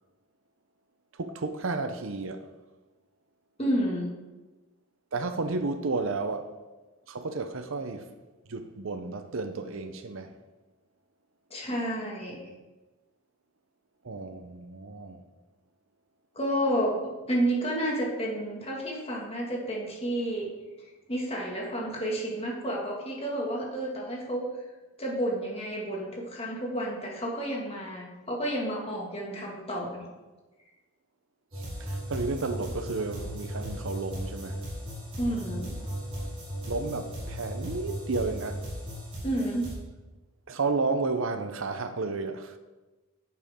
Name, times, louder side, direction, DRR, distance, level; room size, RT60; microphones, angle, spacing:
voice 1, 1.2-2.5 5.1-6.5 7.1-8.1 8.5-10.3 14.0-15.2 31.5-34.6 36.7-38.7 40.5-42.6, right 3 dB, 65° right, 0.7 m, -32 dB
voice 2, 3.6-4.1 11.5-12.5 16.4-20.5 21.1-24.5 25.0-30.0 35.2-35.8 39.2-39.7, right 1 dB, 25° left, 2.0 m, -30 dB
sound 1, 31.5-39.7, equal, 25° right, 3.4 m, -36 dB
10.5 x 8.2 x 3.7 m
head